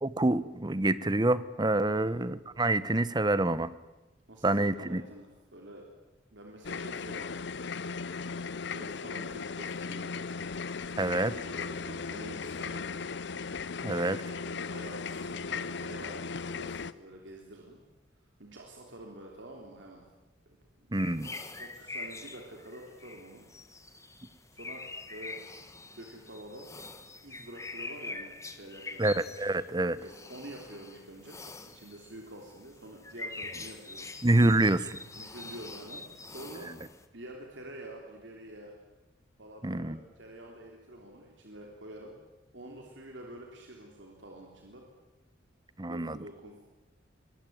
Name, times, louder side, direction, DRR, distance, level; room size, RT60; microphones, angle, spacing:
voice 1, 0.0-3.7 4.4-5.0 11.0-11.4 13.8-14.2 20.9-21.3 29.0-30.0 34.2-35.0 39.6-40.0 45.8-46.2, right 2 dB, 20° right, 16 dB, 0.9 m, -27 dB
voice 2, 1.8-2.1 4.3-5.8 6.3-7.3 7.7-8.0 8.7-10.3 11.2-13.1 14.4-17.8 18.4-20.0 20.4-20.9 21.6-23.5 23.7-24.1 24.5-25.4 26.0-26.7 27.2-29.0 30.0-34.1 35.2-36.7 37.1-38.7 39.4-42.1 42.5-44.8 45.9-46.5, right 1 dB, 65° right, 1 dB, 3.4 m, -47 dB
sound 1, 6.6-16.9, left 5 dB, 60° left, 0.7 m, -37 dB
sound 2, 20.9-37.1, left 3 dB, 15° left, 1.5 m, -45 dB
23.0 x 19.5 x 9.4 m, 1.1 s
head